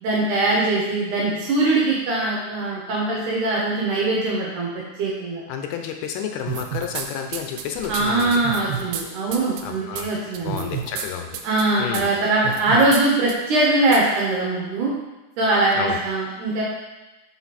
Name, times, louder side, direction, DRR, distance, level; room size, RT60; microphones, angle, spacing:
voice 1, 0.0-4.7 5.0-5.4 7.9-10.7 11.4-14.9 15.4-16.6, right 2 dB, 70° right, -4 dB, 2.1 m, -21 dB
voice 2, 5.5-8.3 9.6-10.1 10.4-11.4 11.8-12.1 15.8-16.0, left 8 dB, 80° left, 5 dB, 2.5 m, -30 dB
sound 1, 6.5-7.1 7.3-9.0 9.3-9.6 10.0-10.1 10.3-11.1 11.3-11.6 11.9-12.0 12.4-13.0 13.3-13.4 13.9-14.0, right 9 dB, 85° right, 2.6 m, -30 dB
6.0 x 5.0 x 4.2 m, 1.1 s
omnidirectional pair, 4.5 m